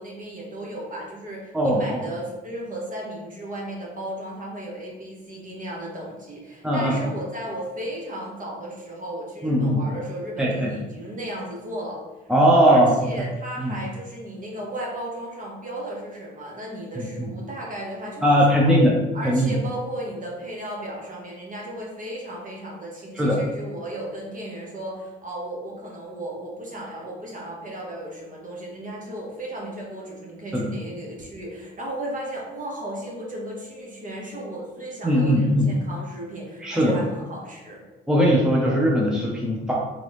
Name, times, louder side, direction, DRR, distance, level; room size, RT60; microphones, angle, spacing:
voice 1, 0.0-12.3 12.6-18.7 19.1-37.8, right 1 dB, 40° right, -2 dB, 1.5 m, -35 dB
voice 2, 1.5-2.0 6.6-6.9 9.4-9.8 10.4-10.7 12.3-12.9 13.6-13.8 17.0-17.1 18.2-19.0 19.2-19.6 23.1-23.4 30.5-30.7 35.0-35.7 36.6-36.9 38.1-39.8, equal, 5° right, -4 dB, 0.8 m, -19 dB
3.8 x 3.7 x 3.2 m, 1.1 s
cardioid pair, 90°, 20 cm